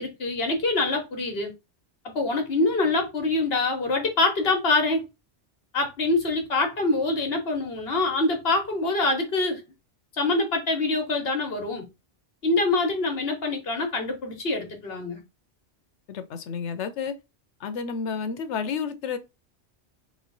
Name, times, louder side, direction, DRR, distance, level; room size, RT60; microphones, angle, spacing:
voice 1, 0.0-1.5 2.1-5.0 5.7-9.6 10.2-11.9 12.4-15.2, left 2 dB, 60° left, 1.3 m, -25 dB
voice 2, 16.1-17.2 17.6-19.2, left 6 dB, 80° left, 1.0 m, -31 dB
3.5 x 3.2 x 3.9 m
omnidirectional pair, 1.2 m